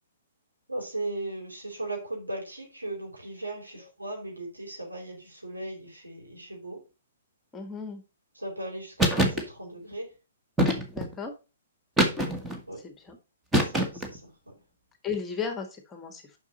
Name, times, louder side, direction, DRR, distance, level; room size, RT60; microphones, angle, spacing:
voice 1, 0.7-6.8 8.3-10.1 12.7-12.8 13.6-14.5, right 2 dB, 80° right, -1 dB, 4.8 m, -37 dB
voice 2, 7.5-8.0 10.9-11.3 12.8-13.2 15.0-16.2, left 6 dB, 15° left, 6 dB, 1.7 m, -35 dB
sound 1, 9.0-9.4 10.6-11.1 12.0-12.6 13.5-14.2, right 1 dB, 5° right, 1.6 m, -24 dB
7.1 x 6.2 x 5.4 m, 0.30 s
figure-of-eight pair, 120°, 0 cm